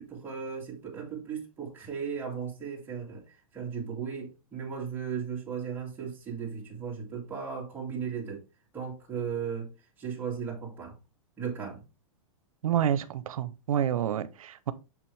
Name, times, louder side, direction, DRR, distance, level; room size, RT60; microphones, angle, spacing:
voice 1, 0.0-8.4 8.7-9.7 10.0-10.9 11.4-11.8, right 6 dB, 10° right, 2.4 m, -36 dB
voice 2, 12.6-14.7, right 10 dB, 85° right, 0.7 m, -28 dB
6.8 x 6.0 x 3.3 m
supercardioid pair, 160°, 17 cm